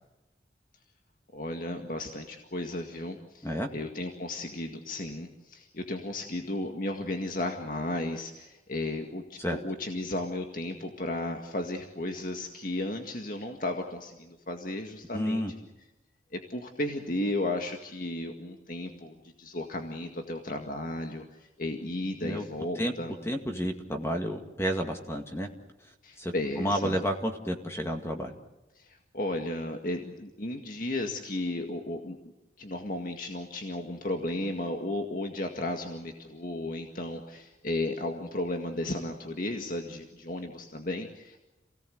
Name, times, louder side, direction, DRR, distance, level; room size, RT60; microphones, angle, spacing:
voice 1, 1.3-15.4 16.3-23.1 26.0-27.0 28.8-32.2 32.6-41.4, left 1 dB, 45° left, 3 dB, 2.0 m, -34 dB
voice 2, 15.1-15.5 22.2-22.5 22.8-25.5 26.2-28.3, equal, 15° left, 3 dB, 2.1 m, -31 dB
28.5 x 18.0 x 7.9 m, 1.0 s
head